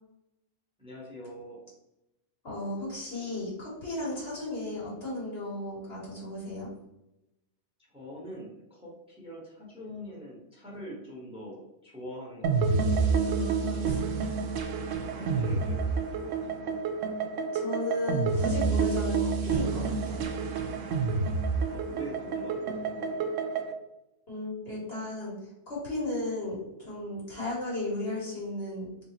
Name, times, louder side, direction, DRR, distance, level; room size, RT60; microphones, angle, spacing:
voice 1, 0.8-1.6 7.9-12.8 13.7-13.9 15.2-16.8 21.7-23.2, equal, 5° right, -4 dB, 1.1 m, -44 dB
voice 2, 2.4-6.7 13.2-14.0 15.1-15.3 17.5-20.3 24.3-25.4 25.7-28.9, left 2 dB, 55° left, -6 dB, 2.0 m, -35 dB
sound 1, 12.4-23.7, right 5 dB, 85° right, 0.9 m, -29 dB
3.9 x 3.5 x 2.9 m, 0.88 s
omnidirectional pair, 1.2 m